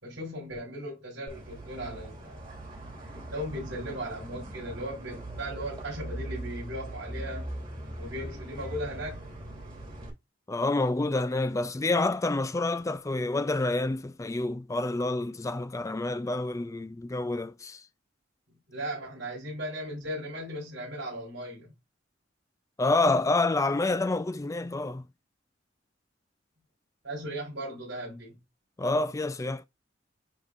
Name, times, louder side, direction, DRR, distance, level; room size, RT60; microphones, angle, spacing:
voice 1, 0.0-2.4 3.1-7.5 8.0-9.2 18.7-21.8 27.0-28.4, equal, 80° right, 4.0 m, -37 dB
sound 1, 1.3-10.1, right 1 dB, 30° right, 3.1 m, -40 dB
voice 2, 10.5-17.9 22.8-25.1 28.8-29.7, left 2 dB, 15° left, 0.4 m, -28 dB
9.6 x 3.8 x 2.6 m
head